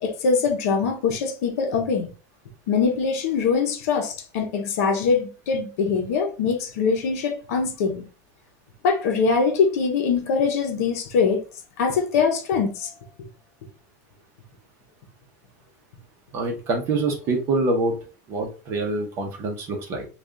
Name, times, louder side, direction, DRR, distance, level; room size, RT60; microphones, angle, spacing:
voice 1, 0.0-2.1 2.7-8.0 8.8-11.4 11.8-12.9 13.2-13.3, left 5 dB, 65° left, 0.8 m, -23 dB
voice 2, 16.3-17.9 18.3-20.0, right 2 dB, 30° right, 0.8 m, -25 dB
3.4 x 2.4 x 3.7 m
supercardioid pair, 175°, 9 cm